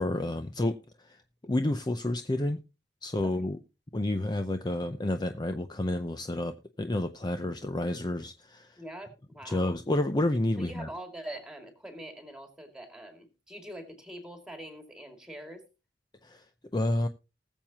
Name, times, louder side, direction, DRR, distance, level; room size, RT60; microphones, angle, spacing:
voice 1, 0.0-2.6 3.0-3.6 3.9-8.8 9.4-10.9 16.2-16.4 16.7-17.1, left 1 dB, 25° left, 8 dB, 0.6 m, -30 dB
voice 2, 8.8-9.7 10.6-15.6, right 1 dB, 5° right, 5 dB, 2.3 m, -44 dB
19.5 x 7.3 x 2.9 m, 0.29 s
head